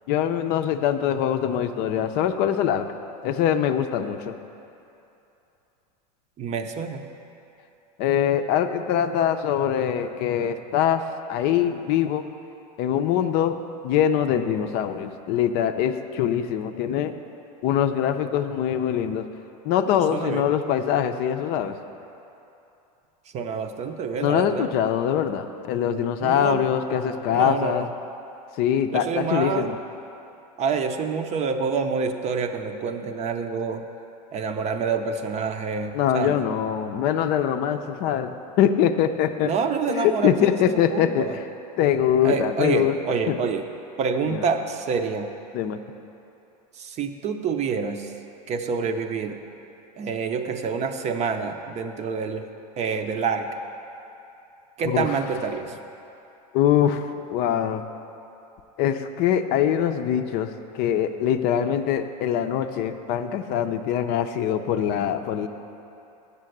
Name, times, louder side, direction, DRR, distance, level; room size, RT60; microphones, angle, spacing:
voice 1, 0.1-2.9 3.2-4.4 8.0-11.0 11.3-12.3 12.8-13.6 13.8-17.1 17.6-19.3 19.6-21.8 24.2-27.9 28.6-29.8 35.9-39.5 39.9-41.4 41.8-43.0 43.3-43.4 44.2-44.4 45.5-45.8 54.8-55.1 56.5-57.8 58.8-65.5, left 9 dB, 50° left, 8 dB, 0.5 m, -23 dB
voice 2, 6.4-7.1 20.1-20.5 23.3-24.7 26.2-26.6 27.3-27.9 28.9-29.7 30.6-33.9 34.3-36.4 39.4-41.4 42.2-43.7 44.0-45.3 46.8-48.1 48.5-49.4 50.0-52.5 52.8-53.6 54.8-55.7, right 5 dB, 35° right, 7 dB, 0.6 m, -27 dB
7.3 x 6.8 x 7.8 m, 2.9 s
supercardioid pair, 110°, 21 cm